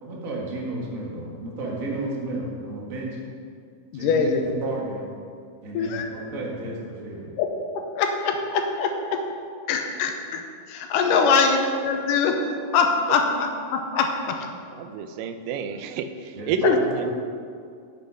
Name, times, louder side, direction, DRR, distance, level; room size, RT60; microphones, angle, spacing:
voice 1, 0.0-3.2 3.9-5.1 5.6-7.3 16.3-17.1, right 2 dB, 35° right, -3 dB, 1.5 m, -32 dB
voice 2, 3.9-4.4 5.7-6.1 7.4-7.5 7.7-9.2 9.7-12.4 12.7-14.5 16.6-16.8, left 5 dB, 80° left, 4 dB, 2.4 m, -23 dB
voice 3, 14.8-17.1, right 5 dB, 85° right, 9 dB, 2.3 m, -29 dB
9.1 x 7.8 x 5.5 m, 2.3 s
omnidirectional pair, 3.8 m